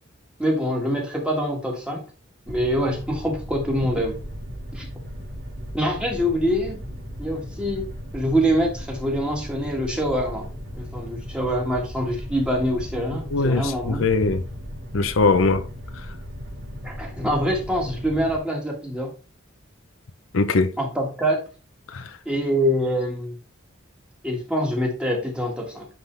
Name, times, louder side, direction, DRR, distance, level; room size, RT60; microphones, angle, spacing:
voice 1, 0.4-2.0 2.5-4.2 4.7-4.9 5.7-6.8 7.2-7.9 8.1-14.0 16.8-19.1 20.8-21.4 22.2-23.4 24.2-25.9, equal, 5° right, 1.7 m, -25 dB
sound 1, 2.5-18.4, equal, 70° right, 1.9 m, -36 dB
voice 2, 13.3-14.4 14.9-15.7 20.3-20.7 21.9-22.2, left 3 dB, 80° left, 0.7 m, -21 dB
9.5 x 3.8 x 3.3 m
head